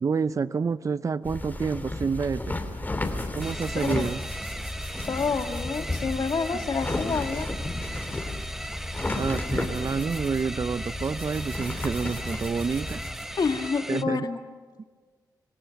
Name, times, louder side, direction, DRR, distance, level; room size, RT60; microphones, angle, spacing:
voice 1, 0.0-2.6 3.3-4.2 9.2-13.0 13.9-14.3, right 5 dB, 45° right, 15 dB, 0.6 m, -28 dB
sound 1, 1.2-13.1, left 2 dB, 25° left, 3.5 m, -33 dB
sound 2, 3.0-13.7, right 2 dB, 25° right, 4.2 m, -46 dB
sound 3, 3.4-14.0, right 1 dB, 5° right, 0.7 m, -38 dB
voice 2, 5.0-7.5 13.4-14.4, left 5 dB, 60° left, 6 dB, 2.0 m, -28 dB
27.0 x 18.0 x 7.2 m, 1.5 s
cardioid pair, 70°, 8 cm